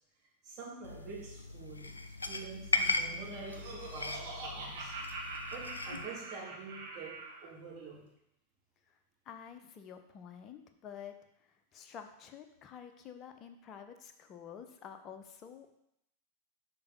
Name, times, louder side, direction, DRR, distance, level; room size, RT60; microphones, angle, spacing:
voice 1, 0.4-5.0 5.5-8.0, right 4 dB, 35° right, -3 dB, 2.4 m, -47 dB
sound 1, 0.8-6.1, left 3 dB, 80° left, 0.5 m, -37 dB
Laughter, 3.0-7.5, right 2 dB, 50° right, 1.9 m, -44 dB
voice 2, 9.3-15.7, left 8 dB, 30° left, 7 dB, 0.8 m, -49 dB
6.8 x 4.8 x 5.4 m, 0.78 s
figure-of-eight pair, 90°, 0 cm